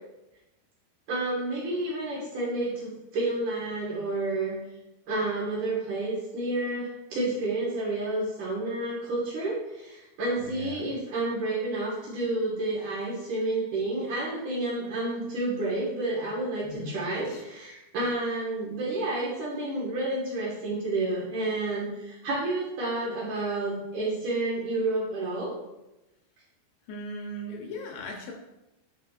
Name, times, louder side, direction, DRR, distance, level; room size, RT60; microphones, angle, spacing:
voice 1, 1.1-4.5 5.1-25.5, right 2 dB, 60° right, -7 dB, 2.5 m, -30 dB
voice 2, 10.4-10.9 16.6-17.0 17.3-17.4 26.9-28.3, left 1 dB, 80° left, 1 dB, 2.7 m, -38 dB
9.4 x 4.8 x 2.4 m, 0.97 s
omnidirectional pair, 4.9 m